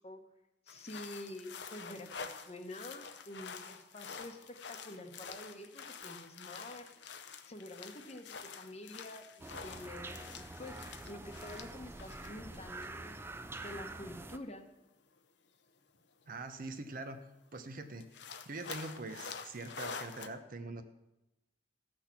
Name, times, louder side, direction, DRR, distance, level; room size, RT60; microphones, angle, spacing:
sound 1, 0.7-12.6 12.8-12.9 14.0-14.1 16.3-16.4 16.7-16.8 17.1-17.2 18.0-20.3, left 5 dB, 65° left, 0.7 m, -47 dB
voice 1, 0.7-6.9 7.5-13.2 13.6-14.7, left 1 dB, 35° left, 6 dB, 1.0 m, -48 dB
sound 2, 9.4-14.4, right 2 dB, 10° right, 0.4 m, -46 dB
voice 2, 16.3-17.2 17.5-18.0 18.5-20.8, right 2 dB, 50° right, 8 dB, 0.8 m, -43 dB
15.0 x 6.2 x 5.9 m, 0.94 s
head